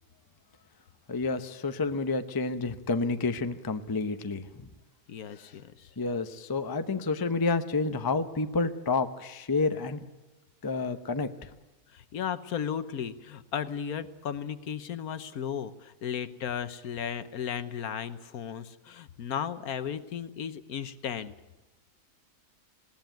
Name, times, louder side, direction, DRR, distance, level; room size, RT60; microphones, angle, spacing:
voice 1, 1.1-4.7 6.0-10.0 10.6-11.5, left 3 dB, 20° left, 9 dB, 0.6 m, -29 dB
voice 2, 5.1-5.9 11.9-21.3, left 8 dB, 70° left, 13 dB, 1.3 m, -35 dB
20.0 x 17.5 x 9.2 m, 1.1 s
omnidirectional pair, 1.7 m